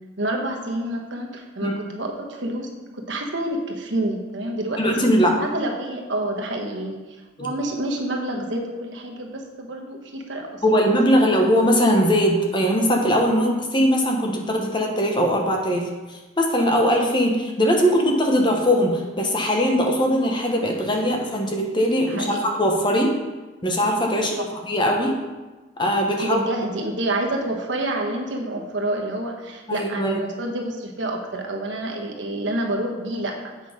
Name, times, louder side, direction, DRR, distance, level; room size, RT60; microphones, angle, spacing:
voice 1, 0.2-5.1 5.4-7.0 7.4-10.8 11.1-11.2 22.1-22.4 24.1-24.5 26.2-33.4, right 1 dB, 70° right, 1 dB, 1.3 m, -28 dB
voice 2, 4.8-5.3 7.4-7.5 10.6-23.2 23.6-25.2 25.8-26.4 29.7-30.2, equal, 25° left, 1 dB, 1.1 m, -20 dB
8.2 x 5.7 x 5.0 m, 1.2 s
head